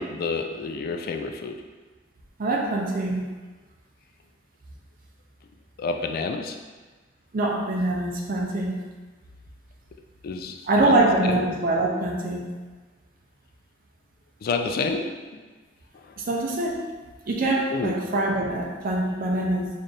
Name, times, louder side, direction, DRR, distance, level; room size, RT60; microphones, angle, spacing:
voice 1, 0.0-1.6 5.8-6.6 10.2-11.0 11.2-11.4 14.4-15.1 17.7-18.0, left 4 dB, 55° left, 5 dB, 0.3 m, -29 dB
voice 2, 2.4-3.2 7.3-8.8 10.7-12.5 16.2-16.8 17.3-19.7, right 2 dB, 50° right, -1 dB, 0.5 m, -24 dB
4.1 x 2.6 x 3.2 m, 1.3 s
head